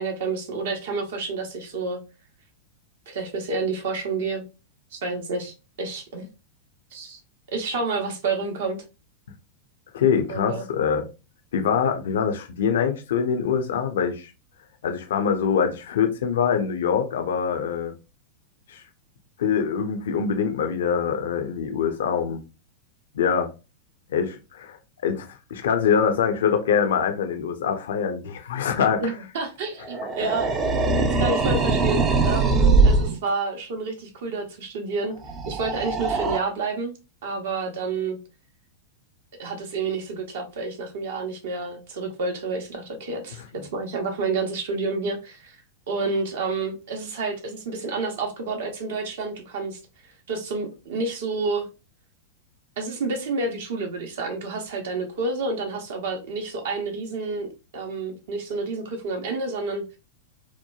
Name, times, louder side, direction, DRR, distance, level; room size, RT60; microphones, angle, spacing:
voice 1, 0.0-2.0 3.1-4.4 4.9-6.3 6.9-7.2 7.5-8.8 10.3-10.7 29.0-30.5 31.2-35.1 35.5-36.9 37.2-38.2 39.4-45.6 45.9-49.8 50.3-51.7 52.8-60.0, right 3 dB, 55° right, 0.8 m, -29 dB
voice 2, 9.9-11.1 11.5-14.3 14.8-17.9 18.7-18.8 19.4-22.4 23.1-23.5 24.1-24.8 25.0-29.0 30.2-30.3, left 7 dB, 60° left, 0.4 m, -24 dB
sound 1, 29.8-33.2 35.2-36.4, right 3 dB, 25° right, 0.4 m, -21 dB
2.9 x 2.1 x 2.2 m
figure-of-eight pair, 95°, 0 cm